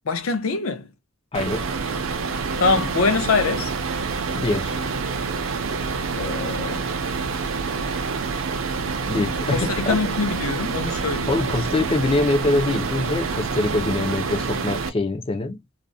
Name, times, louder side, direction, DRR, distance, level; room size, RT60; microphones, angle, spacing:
voice 1, 0.1-0.9 2.6-3.7 6.1-6.8 9.3-11.5, left 4 dB, 85° left, 0.6 m, -24 dB
voice 2, 1.3-1.7 4.3-4.8 9.1-10.0 11.3-15.6, left 2 dB, 25° left, 0.4 m, -24 dB
sound 1, 1.3-14.9, right 4 dB, 65° right, 0.5 m, -27 dB
2.4 x 2.0 x 2.6 m
head